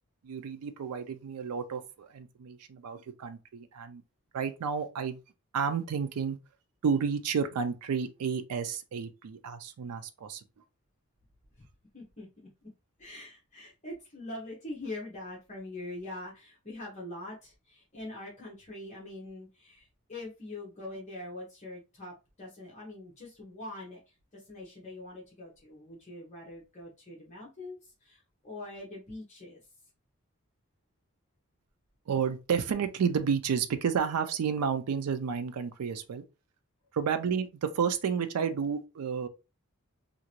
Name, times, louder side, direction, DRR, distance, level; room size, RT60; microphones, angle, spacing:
voice 1, 0.2-4.0 4.3-5.2 5.5-6.4 6.8-10.4 32.1-36.2 36.9-39.3, right 6 dB, 90° right, 0.4 m, -31 dB
voice 2, 11.9-12.7 13.0-29.6, left 2 dB, 30° left, 1.0 m, -43 dB
2.8 x 2.5 x 2.9 m
head